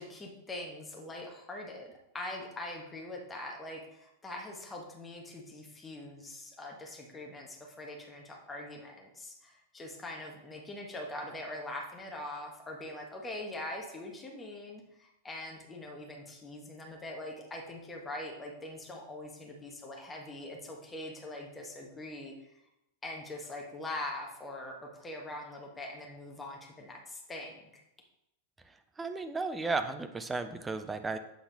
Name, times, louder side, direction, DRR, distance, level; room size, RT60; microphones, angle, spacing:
voice 1, 0.0-1.9 2.1-22.3 23.0-27.6, left 1 dB, 15° left, 0 dB, 1.4 m, -42 dB
voice 2, 29.0-31.2, right 3 dB, 15° right, 8 dB, 0.5 m, -34 dB
7.8 x 3.9 x 4.0 m, 0.85 s
figure-of-eight pair, 90°, 0 cm